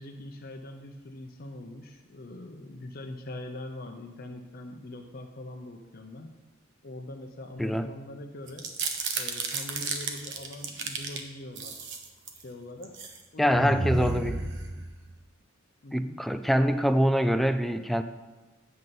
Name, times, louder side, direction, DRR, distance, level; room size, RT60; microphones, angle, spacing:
voice 1, 0.0-6.3 6.8-8.7 9.1-11.9 12.3-13.0 13.3-14.2 15.8-16.2, left 1 dB, 50° left, 3 dB, 0.7 m, -42 dB
sound 1, 8.5-11.2 11.6-12.4 12.8-13.2 13.5-15.1, right 3 dB, 65° right, 1.0 m, -32 dB
voice 2, 13.4-14.4 15.9-18.0, equal, ahead, 9 dB, 0.4 m, -24 dB
8.2 x 5.4 x 7.6 m, 1.2 s
head